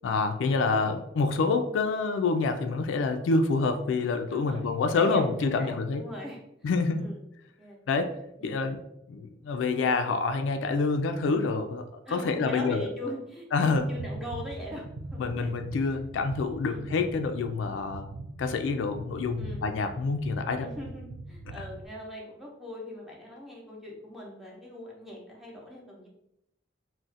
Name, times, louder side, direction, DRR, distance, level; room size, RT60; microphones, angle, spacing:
voice 1, 0.0-6.0 6.6-7.2 7.9-8.2 8.4-8.8 9.1-11.8 12.1-12.9 13.5-13.8 15.2-18.1 18.4-20.7 21.6-21.7, left 4 dB, 85° left, 7 dB, 0.3 m, -27 dB
voice 2, 4.3-4.7 5.0-6.7 7.0-7.2 7.6-7.8 8.4-8.6 12.0-14.8 15.1-15.5 15.8-16.0 16.6-16.8 19.4-19.6 20.6-26.1, left 1 dB, ahead, -4 dB, 0.6 m, -41 dB
sound 1, 13.8-21.9, right 2 dB, 80° right, 0.3 m, -42 dB
2.4 x 2.1 x 3.9 m, 0.80 s
head